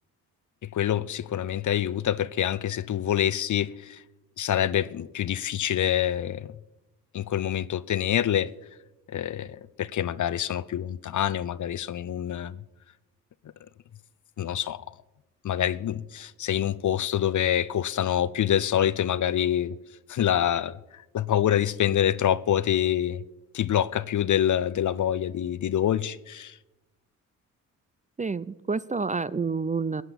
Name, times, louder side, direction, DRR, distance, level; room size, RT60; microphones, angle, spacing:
voice 1, 0.6-4.0 4.4-6.5 7.1-8.5 9.1-12.6 14.4-14.8 15.4-19.7 20.1-23.2 23.5-26.6, left 10 dB, 50° left, 0.7 m, -26 dB
voice 2, 28.2-30.0, right 4 dB, 20° right, 0.5 m, -28 dB
15.5 x 9.9 x 7.2 m
hypercardioid pair, 50°, 39 cm